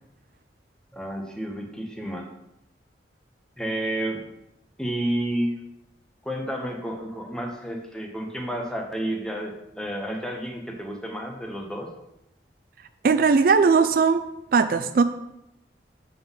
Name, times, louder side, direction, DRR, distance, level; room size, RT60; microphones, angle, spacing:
voice 1, 0.9-2.3 3.6-4.2 4.8-5.6 6.2-11.9, right 1 dB, 5° left, 1 dB, 0.9 m, -30 dB
voice 2, 13.0-14.2 14.5-15.0, right 5 dB, 50° right, 9 dB, 0.3 m, -18 dB
7.6 x 3.9 x 5.5 m, 0.84 s
head